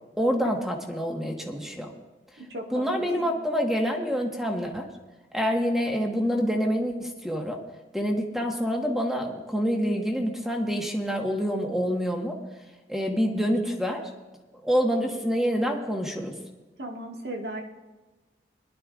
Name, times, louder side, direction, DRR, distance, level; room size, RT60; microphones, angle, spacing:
voice 1, 0.2-1.9 2.7-4.9 5.3-7.6 7.9-12.4 12.9-14.0 14.6-16.3, equal, ahead, 1 dB, 1.4 m, -27 dB
voice 2, 2.4-3.3 16.8-17.6, right 1 dB, 70° right, 0 dB, 1.8 m, -36 dB
21.5 x 12.0 x 2.5 m, 1.2 s
head